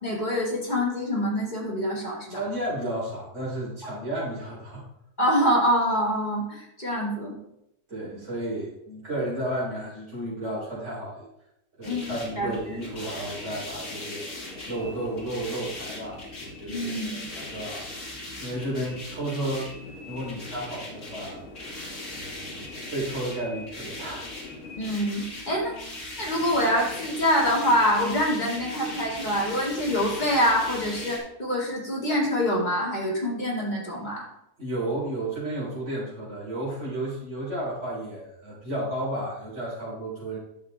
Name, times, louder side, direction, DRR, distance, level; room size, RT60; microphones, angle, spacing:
voice 1, 0.0-2.4 5.2-7.4 8.0-8.2 11.8-12.8 16.7-17.2 24.8-25.7 26.2-34.2, equal, 30° left, -3 dB, 2.4 m, -25 dB
voice 2, 2.3-4.8 7.9-11.3 11.8-14.3 14.7-17.9 18.4-19.7 20.1-21.4 22.1-24.6 34.6-40.4, right 1 dB, 45° right, -6 dB, 4.2 m, -33 dB
sound 1, 11.8-31.2, left 2 dB, 50° left, 2.6 m, -39 dB
11.5 x 6.6 x 3.5 m, 0.82 s
omnidirectional pair, 1.7 m